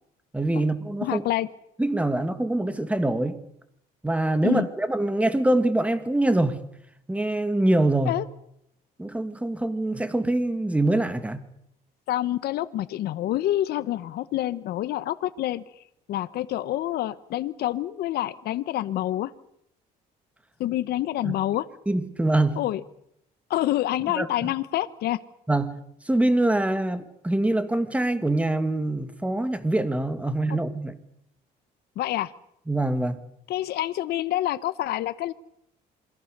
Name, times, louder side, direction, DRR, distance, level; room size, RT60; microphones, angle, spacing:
voice 1, 0.3-1.2 1.8-3.4 4.0-6.6 7.1-8.1 9.0-11.5 21.2-21.4 21.9-22.6 24.1-24.5 25.5-25.8 26.1-30.9 32.7-33.2, right 1 dB, 10° right, 10 dB, 2.4 m, -24 dB
voice 2, 1.0-1.5 4.4-4.7 8.1-8.3 12.1-15.6 16.1-19.3 20.6-21.7 22.6-22.8 23.5-25.2 30.5-30.6 32.0-32.3 33.5-35.3, left 14 dB, 70° left, 13 dB, 1.1 m, -27 dB
27.5 x 22.0 x 6.8 m, 0.76 s
cardioid pair, 110°, 17 cm